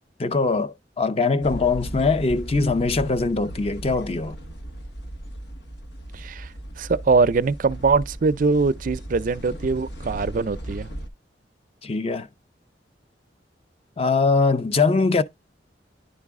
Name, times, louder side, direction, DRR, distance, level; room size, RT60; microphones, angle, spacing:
voice 1, 0.2-4.4 11.8-12.3 14.0-15.2, left 4 dB, 35° left, 0.6 m, -22 dB
sound 1, 1.4-11.1, right 1 dB, 65° left, 1.2 m, -36 dB
voice 2, 6.1-6.5 6.8-10.9, right 4 dB, 45° right, 0.4 m, -22 dB
10.0 x 4.0 x 3.6 m
head